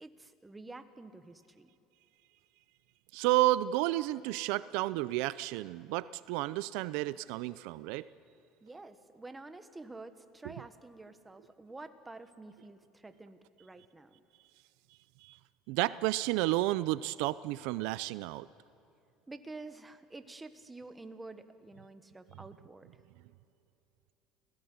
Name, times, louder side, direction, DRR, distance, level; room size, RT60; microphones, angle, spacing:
voice 1, 0.0-1.7 8.6-14.2 19.3-22.9, right 2 dB, 10° right, 9 dB, 1.3 m, -49 dB
voice 2, 3.1-8.1 15.2-15.4 15.7-18.5, right 17 dB, 75° right, 16 dB, 0.5 m, -31 dB
29.5 x 17.0 x 9.5 m, 2.8 s
cardioid pair, 135°, 0 cm